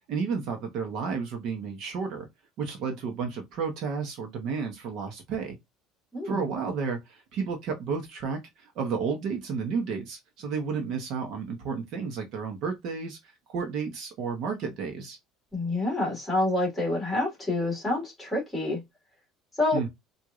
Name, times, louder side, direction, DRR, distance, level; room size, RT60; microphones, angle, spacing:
voice 1, 0.1-2.3 2.6-5.6 6.2-15.2 19.7-19.9, right 5 dB, 50° right, 1.0 m, -32 dB
voice 2, 15.5-18.8 19.6-19.8, left 2 dB, 10° left, 2.0 m, -27 dB
4.6 x 2.6 x 2.4 m
cardioid pair, 170°, 0 cm